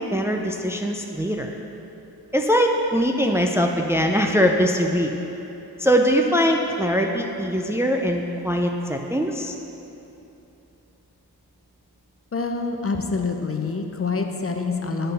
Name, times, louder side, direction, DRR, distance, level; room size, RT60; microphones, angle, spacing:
voice 1, 0.0-1.5 2.3-5.1 5.8-9.5, equal, 5° right, 2 dB, 0.5 m, -22 dB
voice 2, 12.3-15.1, left 4 dB, 35° left, 4 dB, 0.8 m, -26 dB
8.2 x 5.5 x 5.4 m, 3.0 s
cardioid pair, 60°, 38 cm